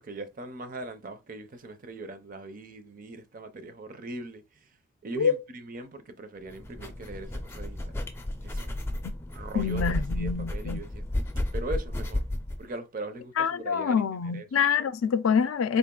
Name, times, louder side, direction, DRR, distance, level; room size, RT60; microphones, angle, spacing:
voice 1, 0.0-4.4 5.0-7.9 8.4-8.7 9.3-11.0 11.5-12.2 12.6-14.0 14.3-14.5, right 2 dB, 40° right, 0.5 m, -40 dB
sound 1, 6.5-12.6, left 1 dB, 10° left, 0.4 m, -33 dB
voice 2, 9.5-10.8 13.4-15.8, left 6 dB, 80° left, 0.4 m, -26 dB
3.8 x 2.4 x 3.7 m
head